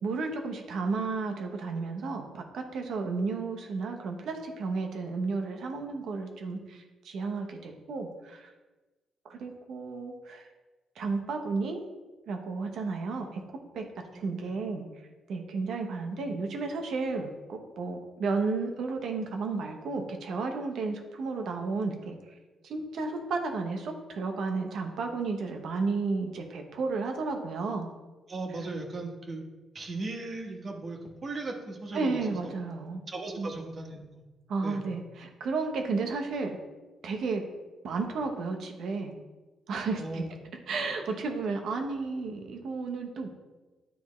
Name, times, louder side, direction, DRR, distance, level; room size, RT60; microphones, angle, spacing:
voice 1, 0.0-8.5 9.3-10.5 11.0-11.8 12.3-13.4 13.7-13.8 14.1-14.9 15.3-22.4 22.6-27.9 31.9-33.0 33.4-33.5 34.5-36.6 37.0-37.4 37.8-39.1 39.7-40.2 40.7-43.3, right 4 dB, 70° right, 4 dB, 0.9 m, -32 dB
voice 2, 14.1-14.5 28.3-29.4 29.7-32.5 33.1-34.2 34.6-34.8 40.0-40.3, right 2 dB, 40° right, 2 dB, 1.0 m, -37 dB
9.5 x 3.4 x 3.1 m, 1.2 s
cardioid pair, 90°, 0 cm